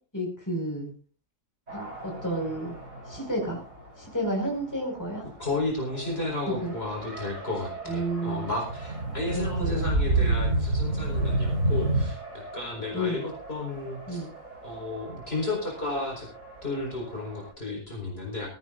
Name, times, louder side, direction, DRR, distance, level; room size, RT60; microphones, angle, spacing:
voice 1, 0.1-0.9 1.7-2.8 3.1-3.6 4.0-5.3 6.5-6.8 7.9-8.5 9.3-9.9 10.2-10.4 12.9-13.3 14.1-14.3, right 1 dB, 10° left, 1 dB, 5.3 m, -31 dB
Race car auto racing, 1.7-17.5, right 2 dB, 50° right, 7.8 m, -44 dB
voice 2, 5.4-14.2 14.6-16.3 16.6-18.5, left 2 dB, 40° left, -1 dB, 4.7 m, -33 dB
sound 1, 8.4-12.1, right 2 dB, 70° right, 3.7 m, -26 dB
22.5 x 15.0 x 2.5 m, 0.35 s
omnidirectional pair, 1.7 m